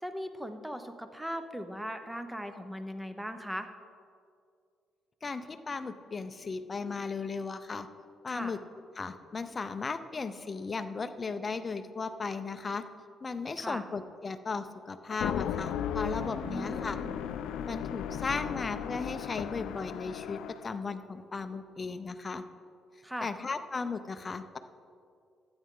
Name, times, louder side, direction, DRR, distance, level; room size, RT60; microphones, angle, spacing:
voice 1, 0.0-3.7 8.3-8.5 13.6-13.8 16.4-17.1 23.0-23.3, equal, 5° right, 8 dB, 0.8 m, -39 dB
voice 2, 5.2-7.9 8.2-8.6 9.0-12.8 13.2-17.0 17.7-22.4 23.2-24.6, left 4 dB, 30° left, 9 dB, 0.5 m, -36 dB
sound 1, 15.1-20.7, left 9 dB, 85° left, 0.4 m, -35 dB
12.5 x 8.8 x 3.8 m, 2.3 s
cardioid pair, 90°, 0 cm